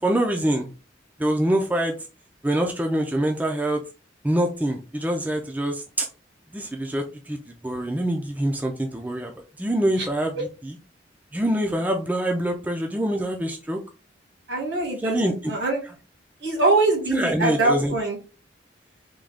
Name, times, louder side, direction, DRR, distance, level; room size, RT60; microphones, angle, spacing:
voice 1, 0.0-0.7 1.2-1.9 2.4-3.8 4.2-6.1 6.5-9.3 9.6-10.3 10.6-10.8 11.3-13.8 15.0-15.5 17.1-17.9, right 1 dB, 10° right, 2 dB, 0.3 m, -25 dB
voice 2, 14.5-15.8 16.4-18.2, right 2 dB, 80° right, -1 dB, 1.7 m, -23 dB
3.6 x 2.3 x 3.3 m, 0.33 s
head